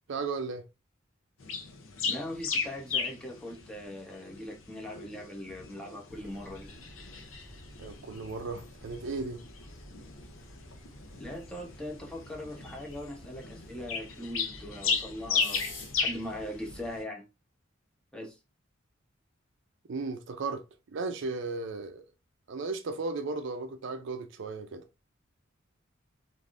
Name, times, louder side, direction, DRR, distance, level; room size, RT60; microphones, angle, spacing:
voice 1, 0.1-0.6 7.8-9.4 19.9-20.6 20.9-22.0 22.5-24.8, right 3 dB, 65° right, 0.5 m, -35 dB
sound 1, 1.4-17.0, left 5 dB, 90° left, 0.7 m, -36 dB
voice 2, 2.0-6.7 11.1-15.6 16.0-17.2 18.1-18.4, left 1 dB, 5° left, 0.8 m, -40 dB
sound 2, 6.1-17.0, left 1 dB, 70° left, 1.3 m, -50 dB
3.3 x 2.6 x 2.5 m
head